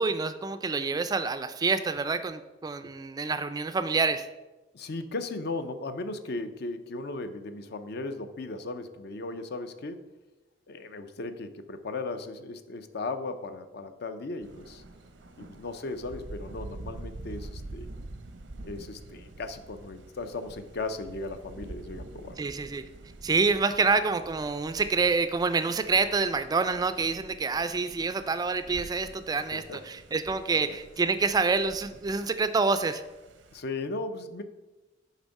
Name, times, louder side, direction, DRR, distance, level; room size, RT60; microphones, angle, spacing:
voice 1, 0.0-4.3 22.4-22.9 23.2-33.0, right 4 dB, 20° right, 11 dB, 0.3 m, -27 dB
voice 2, 4.7-10.1 10.7-14.8 15.4-17.9 18.6-22.4 29.4-29.8 30.7-30.8 33.5-34.4, left 3 dB, 60° left, 9 dB, 0.6 m, -37 dB
Thunder, 14.4-33.6, right 2 dB, 90° right, 0.7 m, -46 dB
8.1 x 3.5 x 5.3 m, 1.1 s
head